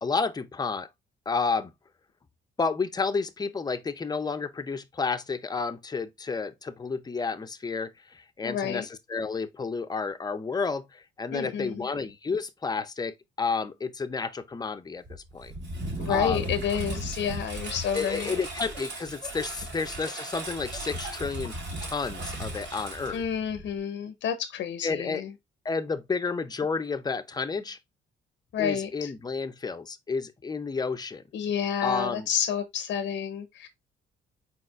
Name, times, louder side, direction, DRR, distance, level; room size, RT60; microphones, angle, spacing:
voice 1, 0.0-0.9 1.3-1.7 2.6-15.5 16.1-16.5 17.9-21.6 21.8-23.2 24.8-25.2 25.6-27.8 28.6-31.2 31.8-32.3, left 4 dB, 20° left, 0.5 m, -31 dB
voice 2, 8.4-8.9 11.3-11.9 16.0-18.4 23.1-25.3 28.5-29.1 31.3-33.7, left 8 dB, 70° left, 0.6 m, -30 dB
Engine, 15.1-23.8, right 1 dB, 65° right, 2.5 m, -36 dB
4.3 x 4.2 x 2.4 m
cardioid pair, 90°, 20 cm